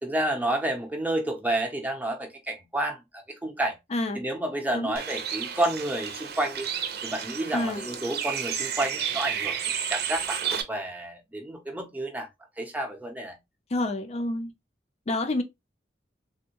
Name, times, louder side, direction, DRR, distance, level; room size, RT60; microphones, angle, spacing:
voice 1, 0.0-3.7 4.1-6.7 7.0-9.6 9.9-12.3 12.6-13.3, right 1 dB, 10° right, 0.6 m, -30 dB
voice 2, 3.9-4.2 4.7-4.9 7.5-7.8 13.7-14.5 15.1-15.4, left 2 dB, 35° left, 0.5 m, -28 dB
Bird, 5.0-10.6, right 8 dB, 60° right, 0.6 m, -31 dB
3.4 x 2.1 x 2.8 m
head